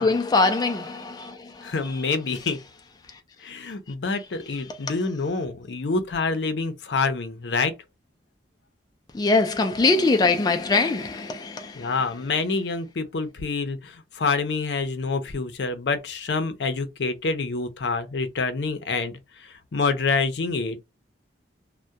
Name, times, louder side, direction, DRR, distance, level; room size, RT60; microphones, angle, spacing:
voice 1, 0.0-2.0 9.1-11.9, left 3 dB, 25° left, 0.3 m, -23 dB
voice 2, 1.6-2.6 3.4-7.7 11.7-20.8, left 4 dB, 80° left, 0.5 m, -27 dB
2.3 x 2.1 x 2.7 m
head